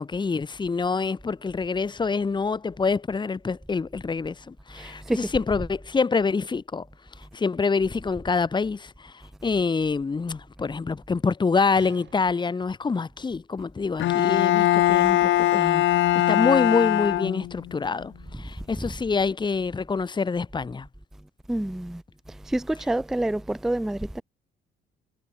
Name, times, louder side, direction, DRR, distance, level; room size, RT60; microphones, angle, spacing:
voice 1, 0.0-6.9 7.3-9.1 9.4-15.8 16.3-20.9, left 4 dB, 20° left, 0.9 m, -26 dB
voice 2, 4.8-5.3 21.5-22.0 22.5-24.2, right 1 dB, ahead, 0.4 m, -27 dB
sound 1, 11.7-13.0 13.8-13.9, right 10 dB, 65° right, 5.8 m, -50 dB
Bowed string instrument, 14.0-17.7, left 14 dB, 75° left, 0.7 m, -21 dB
cardioid pair, 90°, 20 cm